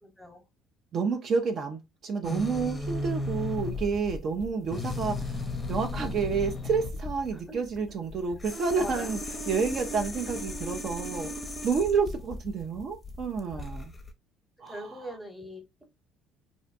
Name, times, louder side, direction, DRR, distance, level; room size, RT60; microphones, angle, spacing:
voice 1, 0.0-0.4 7.3-7.6 8.8-9.1 11.3-11.4 13.5-13.8 14.7-15.8, equal, ahead, 0.9 m, -42 dB
voice 2, 0.9-9.2 9.5-11.3 11.6-13.9 14.6-14.9, right 5 dB, 50° right, 0.4 m, -29 dB
sound 1, 2.2-14.1, left 1 dB, 20° left, 0.6 m, -35 dB
2.6 x 2.1 x 2.5 m
supercardioid pair, 75°, 0 cm